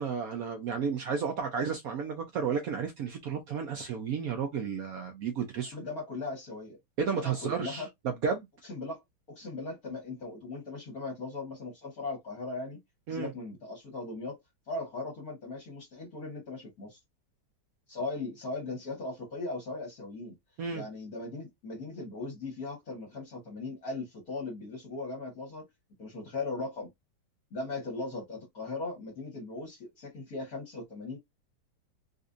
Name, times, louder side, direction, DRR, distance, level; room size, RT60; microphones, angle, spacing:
voice 1, 0.0-5.8 7.0-8.5 13.1-13.3 20.6-20.8, right 6 dB, 70° right, 0.9 m, -32 dB
voice 2, 5.7-6.8 7.1-7.9 8.6-9.0 9.3-12.8 13.1-14.4 14.7-17.0 17.9-20.3 20.7-25.6 26.0-26.9 27.5-31.2, left 3 dB, 50° left, 1.7 m, -38 dB
4.0 x 2.5 x 2.5 m
omnidirectional pair, 2.2 m